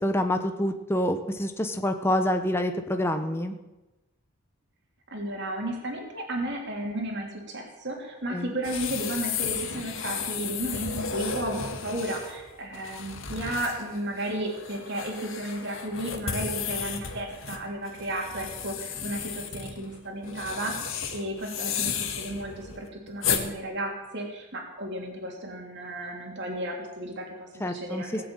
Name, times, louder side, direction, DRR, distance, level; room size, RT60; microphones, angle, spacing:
voice 1, 0.0-3.6 8.3-8.5 27.6-28.2, left 1 dB, 10° left, 6 dB, 0.9 m, -27 dB
voice 2, 5.1-20.8 21.1-28.2, right 1 dB, 50° right, 1 dB, 3.3 m, -33 dB
sound 1, 8.6-23.4, left 7 dB, 60° left, 1.9 m, -34 dB
19.0 x 7.6 x 9.0 m, 1.0 s
head